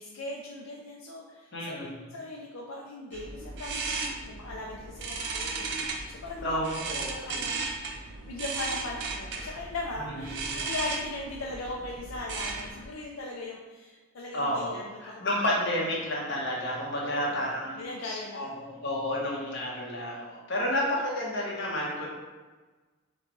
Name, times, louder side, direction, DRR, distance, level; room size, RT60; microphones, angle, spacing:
voice 1, 0.0-6.6 6.9-15.3 17.0-18.8, left 2 dB, 85° left, -1 dB, 0.5 m, -39 dB
voice 2, 1.5-2.1 6.4-7.4 10.1-10.7 14.3-22.1, left 1 dB, 60° left, -4 dB, 1.1 m, -31 dB
sound 1, 3.1-12.8, right 4 dB, 60° right, 0.5 m, -36 dB
6.4 x 2.3 x 3.0 m, 1.3 s
head